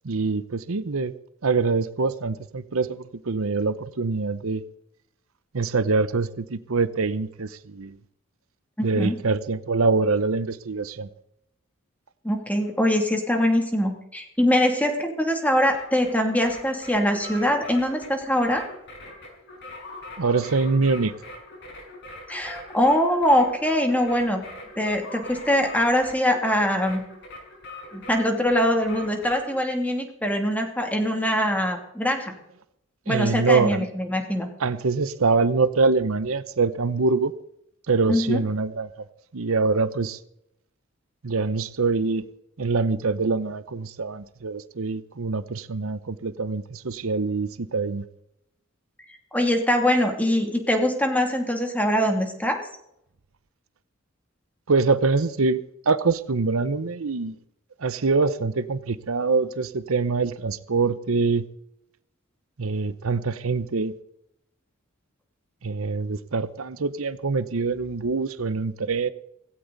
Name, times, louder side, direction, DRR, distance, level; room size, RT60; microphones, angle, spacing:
voice 1, 0.0-1.1 1.4-4.6 5.5-7.9 8.8-11.1 20.2-21.1 33.1-33.9 34.6-37.3 37.9-38.9 39.3-40.2 41.2-42.2 42.6-48.0 54.7-57.3 57.8-61.4 62.6-63.9 65.6-69.1, right 4 dB, 80° right, 0.8 m, -24 dB
voice 2, 8.8-9.2 12.2-18.7 22.3-24.4 24.8-27.1 27.9-32.3 33.1-34.5 38.1-38.4 49.3-52.6, equal, 5° left, 2.6 m, -23 dB
sound 1, 15.4-29.6, left 1 dB, 55° left, 5.6 m, -42 dB
17.0 x 16.5 x 4.0 m
head